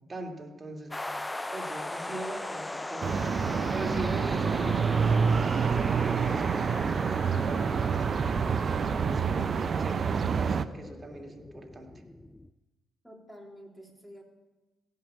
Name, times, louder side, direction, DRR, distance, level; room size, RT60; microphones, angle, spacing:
voice 1, 0.1-1.0 1.5-3.2 3.7-12.0, right 2 dB, 30° right, 2 dB, 2.6 m, -41 dB
sound 1, 0.9-12.5, left 2 dB, 15° left, 0.5 m, -40 dB
sound 2, 3.0-10.7, right 6 dB, 50° right, 0.6 m, -27 dB
voice 2, 13.0-14.2, equal, ahead, -1 dB, 3.4 m, -49 dB
16.5 x 5.6 x 8.6 m, 1.1 s
supercardioid pair, 60°, 0 cm